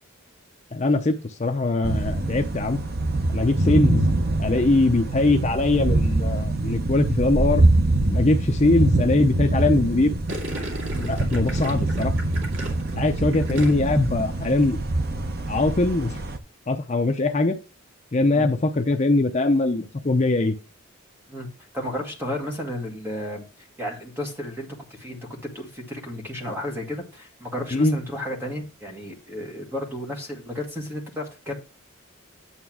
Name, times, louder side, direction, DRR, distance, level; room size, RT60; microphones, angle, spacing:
voice 1, 0.7-2.8 3.3-4.1 4.4-7.7 8.1-10.2 11.0-12.1 13.0-14.8 15.5-16.2 16.7-17.6 18.1-20.6 27.7-28.0, left 2 dB, 30° left, 5 dB, 0.5 m, -21 dB
sound 1, 1.8-16.4, right 2 dB, 45° right, 0.7 m, -24 dB
Gurgling, 10.3-14.1 14.3-14.7, right 1 dB, 70° right, 2.3 m, -35 dB
voice 2, 21.7-23.4 23.8-31.5, left 1 dB, 10° right, 1 dB, 1.7 m, -33 dB
9.0 x 3.4 x 6.2 m, 0.33 s
head